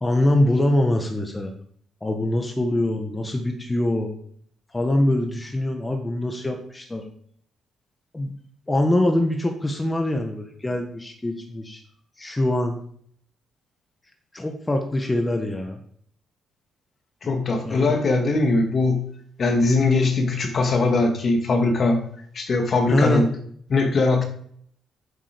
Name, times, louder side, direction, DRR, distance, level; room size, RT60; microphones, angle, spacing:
voice 1, 0.0-1.5 2.0-4.1 4.7-7.1 8.1-8.3 8.7-11.8 12.2-12.8 14.3-15.8 17.2-17.3 17.6-18.0 22.9-23.2, left 1 dB, 15° left, 4 dB, 1.5 m, -23 dB
voice 2, 17.2-19.0 19.4-22.0 22.3-23.3 23.7-24.2, left 3 dB, 45° left, 4 dB, 2.3 m, -21 dB
8.9 x 7.5 x 5.3 m, 0.62 s
cardioid pair, 90°, 0 cm